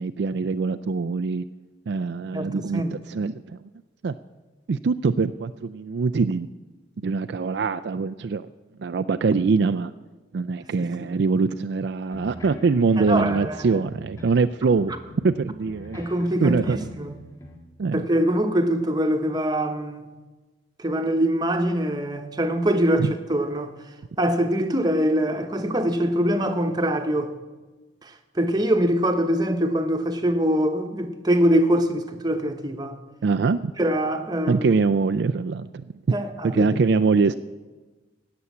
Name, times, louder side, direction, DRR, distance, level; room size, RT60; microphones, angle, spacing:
voice 1, 0.0-1.4 1.9-3.6 4.0-4.1 4.7-6.5 7.0-8.5 8.8-9.9 10.3-14.9 15.2-16.0 16.4-16.9 17.8-18.1 23.0-23.1 33.2-33.7 34.5-35.9 36.5-37.4, right 4 dB, 60° right, 0.4 m, -23 dB
voice 2, 2.3-3.0 10.8-11.1 13.0-13.8 15.9-17.2 17.9-20.2 20.8-23.8 24.2-27.3 28.0-33.0 33.8-34.7 36.1-36.7, equal, 20° right, 1.0 m, -24 dB
sound 1, 12.0-14.4 14.7-17.6, left 1 dB, 15° left, 1.7 m, -42 dB
17.5 x 7.0 x 8.4 m
head